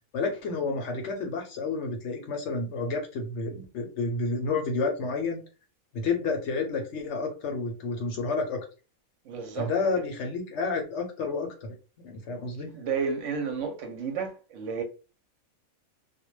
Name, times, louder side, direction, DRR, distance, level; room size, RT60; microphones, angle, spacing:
voice 1, 0.1-5.4 5.9-8.6 9.6-11.7 12.0-12.7, left 3 dB, 65° left, 0.8 m, -30 dB
voice 2, 9.2-9.7 12.7-14.8, right 6 dB, 70° right, 0.9 m, -31 dB
2.3 x 2.1 x 3.0 m
omnidirectional pair, 1.5 m